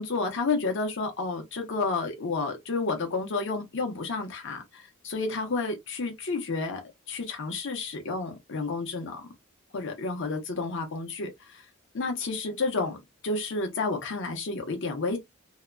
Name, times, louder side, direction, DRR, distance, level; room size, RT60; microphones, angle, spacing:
voice 1, 0.0-6.8 7.1-9.3 9.7-11.6 11.9-13.0 13.2-15.2, left 3 dB, 60° left, 0.8 m, -30 dB
2.8 x 2.2 x 2.4 m
head